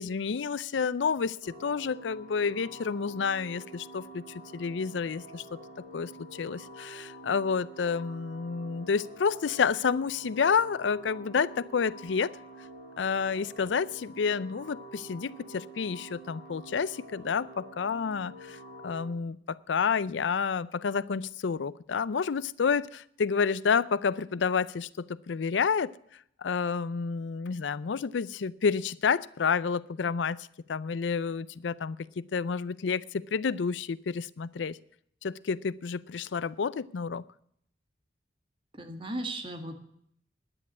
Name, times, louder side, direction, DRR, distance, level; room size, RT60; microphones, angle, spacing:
voice 1, 0.0-5.4 5.9-12.3 13.0-18.6 18.8-25.9 26.4-34.8 35.2-37.2, left 5 dB, 90° left, 18 dB, 0.5 m, -29 dB
sound 1, 1.4-19.1, right 1 dB, 75° right, 7.8 m, -47 dB
voice 2, 38.7-39.7, right 1 dB, 30° right, 5 dB, 1.8 m, -36 dB
11.0 x 9.9 x 8.2 m, 0.69 s
head